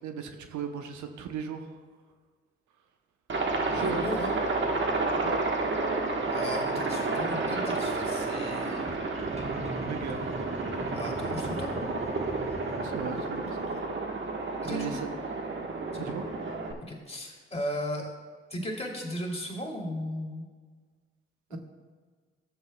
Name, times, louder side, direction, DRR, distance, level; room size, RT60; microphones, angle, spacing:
voice 1, 0.0-1.8 3.7-4.0 5.2-5.5 9.8-10.2 12.7-13.8 14.7-15.1 16.0-16.2 21.5-21.6, right 6 dB, 70° right, 6 dB, 0.9 m, -36 dB
Aircraft, 3.3-16.7, right 3 dB, 40° right, 1.3 m, -31 dB
voice 2, 3.7-4.4 6.2-8.9 10.9-11.8 14.6-15.0 15.9-16.1 16.8-18.1 18.5-20.5 21.5-21.6, equal, 20° left, 0 dB, 2.9 m, -36 dB
sound 1, 7.7-8.1 8.8-13.8, right 1 dB, 20° right, 1.5 m, -41 dB
14.0 x 7.8 x 2.3 m, 1.5 s
hypercardioid pair, 50°, 30 cm